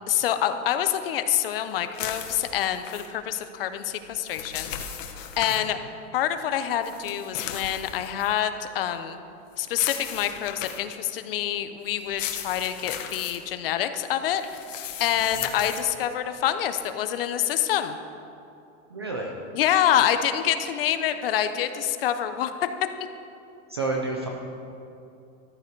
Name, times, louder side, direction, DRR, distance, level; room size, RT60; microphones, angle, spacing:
voice 1, 0.1-4.7 5.4-5.8 6.1-9.2 9.6-14.4 15.0-18.0 19.5-22.5, left 10 dB, 45° left, 9 dB, 0.7 m, -26 dB
sound 1, 1.9-3.1 4.0-5.6 6.8-8.4 9.7-10.9 12.0-13.4 14.4-15.9, left 9 dB, 70° left, 1.4 m, -36 dB
voice 2, 18.9-19.3 23.7-24.3, right 3 dB, 20° right, 0 dB, 0.3 m, -30 dB
14.0 x 12.5 x 4.6 m, 2.7 s
supercardioid pair, 175°, 40 cm